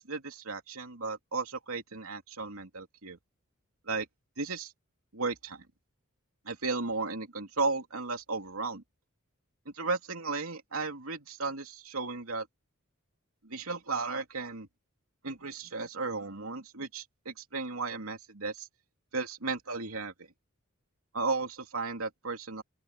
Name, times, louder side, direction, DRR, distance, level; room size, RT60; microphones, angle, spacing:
voice 1, 0.0-3.2 3.8-4.1 4.4-4.7 5.1-5.7 6.4-8.8 9.6-12.5 13.4-14.7 15.2-18.7 19.1-20.3 21.1-22.6, right 3 dB, 85° right, 2.9 m, -35 dB
open air
head